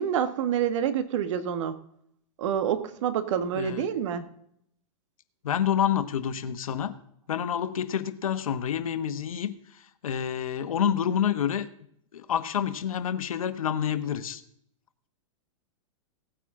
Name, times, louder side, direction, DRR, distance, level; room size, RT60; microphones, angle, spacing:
voice 1, 0.0-1.8 2.4-4.3, right 8 dB, 60° right, 11 dB, 1.3 m, -27 dB
voice 2, 5.4-6.9 7.3-11.7 12.1-14.4, left 9 dB, 85° left, 11 dB, 1.1 m, -28 dB
17.0 x 9.1 x 3.7 m, 0.70 s
hypercardioid pair, 135°, 17 cm